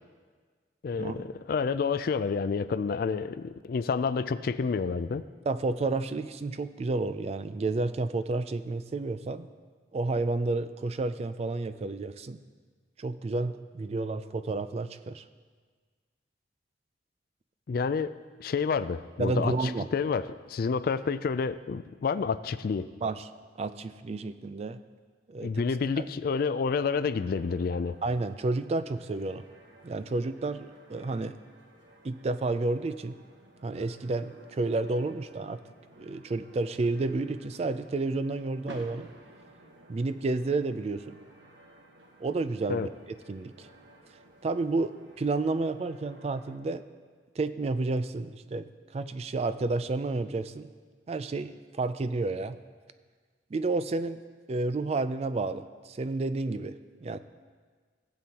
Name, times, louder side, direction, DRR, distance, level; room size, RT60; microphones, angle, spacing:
voice 1, 0.8-5.2 17.7-18.1 18.4-22.9 25.4-28.0 42.7-42.9, left 5 dB, 50° left, 14 dB, 0.3 m, -29 dB
voice 2, 5.5-9.5 9.9-12.4 13.0-15.2 19.2-19.9 23.0-23.3 23.6-24.8 25.3-25.6 26.0-26.1 28.0-29.4 29.8-31.3 32.0-33.2 33.6-35.6 36.0-39.1 39.9-41.2 42.2-42.9 43.3-43.7 44.4-46.8 47.4-50.7 51.1-52.6 53.5-54.2 54.5-57.2, right 3 dB, 35° right, 12 dB, 0.3 m, -31 dB
sound 1, 27.2-46.6, right 1 dB, 75° right, 1.2 m, -54 dB
17.5 x 7.7 x 2.9 m, 1.5 s
head